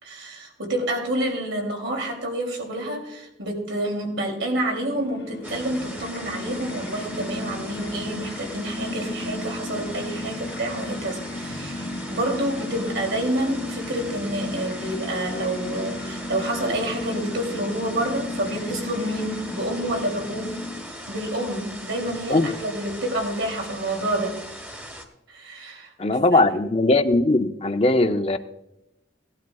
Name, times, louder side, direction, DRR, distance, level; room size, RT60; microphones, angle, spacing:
voice 1, 0.0-11.8 12.1-20.6 21.1-24.4 25.3-25.9 26.3-26.6, right 1 dB, 90° right, 2 dB, 2.8 m, -28 dB
sound 1, 4.5-21.2, left 2 dB, 55° left, 1.0 m, -35 dB
sound 2, 5.4-25.0, right 1 dB, 10° right, 1.2 m, -39 dB
voice 2, 22.1-22.5 26.0-28.4, left 2 dB, 30° left, 8 dB, 0.6 m, -20 dB
18.5 x 12.0 x 2.3 m, 0.88 s
head